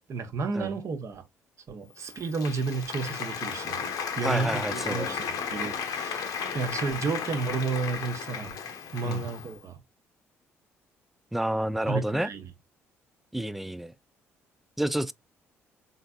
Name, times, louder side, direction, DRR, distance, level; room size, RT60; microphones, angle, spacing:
voice 1, 0.1-1.2 1.7-3.8 4.2-8.6 8.9-9.8 11.8-12.4, right 4 dB, 45° right, 1.0 m, -32 dB
Applause, 2.0-9.6, left 6 dB, 55° left, 0.9 m, -34 dB
voice 2, 4.2-5.2 9.0-9.2 11.3-12.3 13.3-13.9 14.8-15.1, right 1 dB, ahead, 0.3 m, -29 dB
4.3 x 3.8 x 2.2 m
figure-of-eight pair, 45°, 7 cm